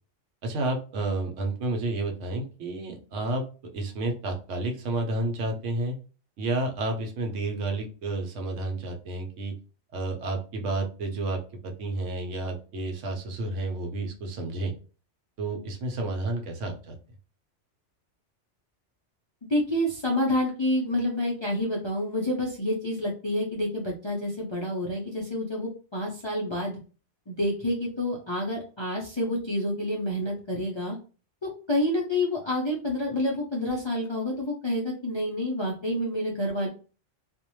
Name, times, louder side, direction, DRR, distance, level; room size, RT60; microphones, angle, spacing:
voice 1, 0.4-3.4 3.7-6.0 6.4-9.5 9.9-14.7 15.4-17.0, right 2 dB, 80° right, 3 dB, 1.0 m, -30 dB
voice 2, 19.5-26.8 27.3-31.0 31.4-36.7, left 1 dB, 40° left, -3 dB, 0.4 m, -28 dB
2.5 x 2.1 x 2.9 m, 0.35 s
omnidirectional pair, 1.2 m